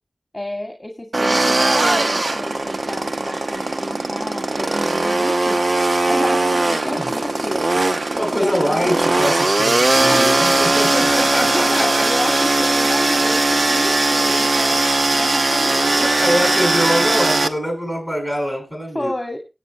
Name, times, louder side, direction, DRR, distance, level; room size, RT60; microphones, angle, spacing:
voice 1, 0.3-7.8 8.3-9.0 10.1-10.3 10.6-10.7 11.5-14.8 15.1-16.4 18.9-19.4, left 1 dB, 20° left, 2.2 m, -30 dB
sound 1, 1.1-17.5, right 2 dB, 55° right, 1.0 m, -19 dB
voice 2, 6.6-7.1 8.1-12.1 15.6-19.1, equal, 10° right, 6.9 m, -24 dB
17.5 x 8.0 x 3.2 m
wide cardioid pair, 50°, 0 cm